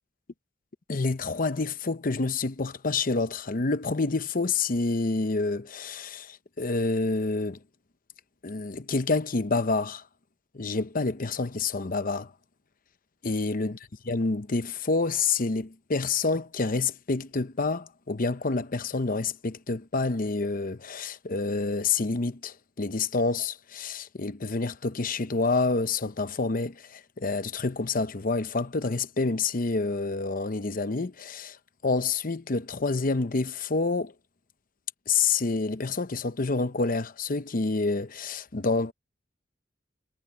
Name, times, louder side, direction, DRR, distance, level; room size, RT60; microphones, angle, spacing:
voice 1, 0.9-7.6 8.4-10.0 10.5-12.3 13.2-13.8 14.1-31.6 31.8-34.1 35.1-38.9, left 3 dB, 50° left, 0.8 m, -28 dB
head